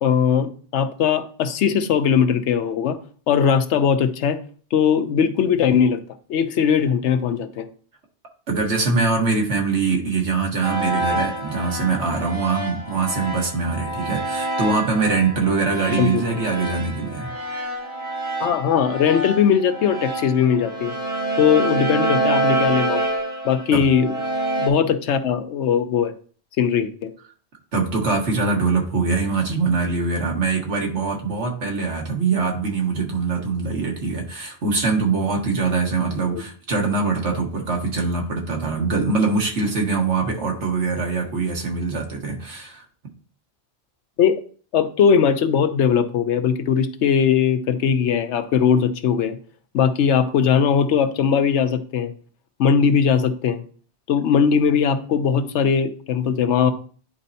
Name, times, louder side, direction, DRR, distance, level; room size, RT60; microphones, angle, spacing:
voice 1, 0.0-3.0 3.3-4.4 4.7-6.0 6.3-7.7 16.0-16.2 18.4-20.9 21.4-23.0 23.4-24.1 24.6-26.1 26.6-27.1 36.3-36.4 44.2-44.4 44.7-49.4 49.7-52.1 52.6-53.6 54.1-56.7, left 7 dB, 90° left, 10 dB, 1.0 m, -19 dB
voice 2, 8.5-17.3 23.7-23.8 27.7-42.8, right 4 dB, 80° right, 1 dB, 1.7 m, -23 dB
sound 1, 10.6-24.7, right 2 dB, 25° right, 1.7 m, -27 dB
10.0 x 4.2 x 2.7 m, 0.43 s
omnidirectional pair, 1.2 m